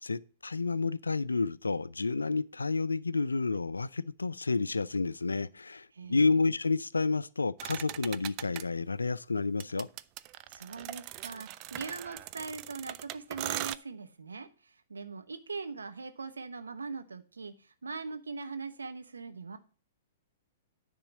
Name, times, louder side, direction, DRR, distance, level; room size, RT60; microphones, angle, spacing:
voice 1, 0.0-9.9, left 3 dB, 85° left, 0.4 m, -30 dB
voice 2, 5.9-6.5 10.5-19.6, right 4 dB, 80° right, 1.0 m, -41 dB
sound 1, 7.6-8.6 9.6-13.8, right 16 dB, 40° right, 0.4 m, -40 dB
9.9 x 3.8 x 7.2 m
figure-of-eight pair, 110°, 0 cm